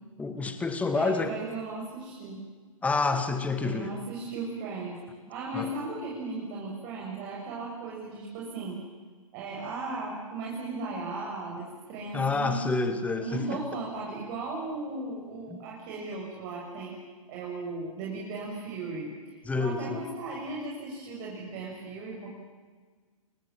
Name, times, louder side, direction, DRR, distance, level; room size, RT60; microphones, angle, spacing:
voice 1, 0.2-1.4 2.8-3.9 5.5-5.7 12.1-13.6 15.5-15.6 19.5-20.1, left 4 dB, 10° left, 8 dB, 2.1 m, -28 dB
voice 2, 0.9-2.4 3.6-5.0 5.3-8.8 9.3-12.6 13.2-17.0 17.3-22.3, right 3 dB, 35° right, -3 dB, 6.7 m, -36 dB
29.5 x 23.0 x 7.7 m, 1.5 s
figure-of-eight pair, 120°, 18 cm